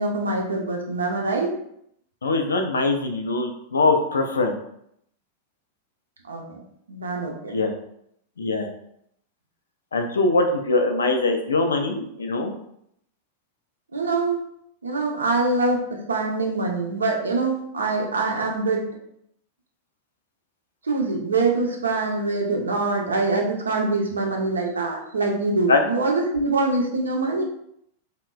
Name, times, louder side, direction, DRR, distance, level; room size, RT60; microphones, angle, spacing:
voice 1, 0.0-1.6 6.3-6.6 6.9-7.6 13.9-14.4 14.8-18.9 20.8-27.4, right 3 dB, 75° right, 1 dB, 0.5 m, -24 dB
voice 2, 2.2-4.5 7.5-7.7 8.4-8.7 9.9-12.5 25.7-25.8, left 3 dB, 70° left, 5 dB, 0.3 m, -22 dB
3.0 x 2.0 x 2.2 m, 0.73 s
figure-of-eight pair, 90°, 0 cm